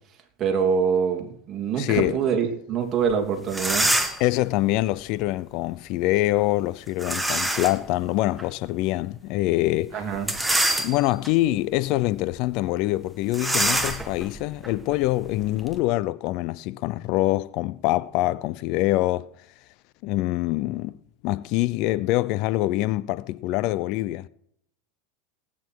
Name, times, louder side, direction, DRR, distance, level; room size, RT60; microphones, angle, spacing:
voice 1, 0.4-3.9 9.9-10.3, right 6 dB, 35° right, 2.9 m, -25 dB
voice 2, 1.8-2.2 4.2-10.0 10.8-19.3 20.0-21.0 21.2-24.3, left 17 dB, 55° left, 0.5 m, -25 dB
sound 1, 3.1-3.2 3.5-4.3 7.0-7.9 8.4-8.5 10.1-11.3 11.8-12.1 12.3-12.4 13.3-15.8, right 1 dB, 5° right, 1.5 m, -26 dB
18.5 x 9.6 x 4.6 m
supercardioid pair, 120°, 0 cm